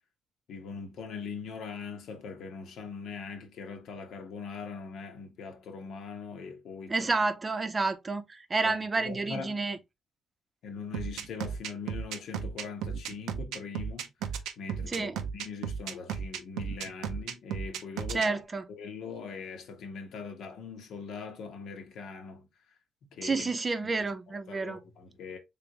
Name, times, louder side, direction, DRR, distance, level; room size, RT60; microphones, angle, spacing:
voice 1, 0.5-7.1 8.6-9.6 10.6-18.4 18.7-22.5 23.1-23.5 24.5-25.4, left 5 dB, 75° left, 1.0 m, -41 dB
voice 2, 6.9-9.8 14.9-15.2 18.1-18.7 23.2-24.8, right 3 dB, 30° right, 0.6 m, -30 dB
sound 1, 10.9-18.3, right 7 dB, 90° right, 0.5 m, -34 dB
3.4 x 3.3 x 2.9 m
cardioid pair, 90°, 0 cm